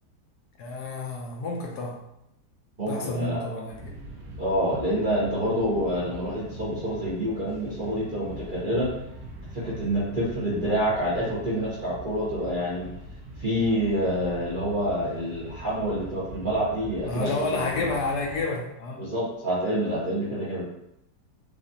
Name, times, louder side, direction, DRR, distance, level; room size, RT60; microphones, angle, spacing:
voice 1, 0.6-2.0 2.9-3.9 17.0-19.0, left 3 dB, 70° left, 0 dB, 1.1 m, -30 dB
voice 2, 2.8-3.4 4.4-8.9 9.5-12.9 13.4-17.9 19.0-20.6, equal, 40° right, -9 dB, 0.7 m, -27 dB
sound 1, 3.7-18.5, right 1 dB, 60° right, 1.2 m, -43 dB
4.8 x 2.4 x 2.7 m, 0.81 s
omnidirectional pair, 1.9 m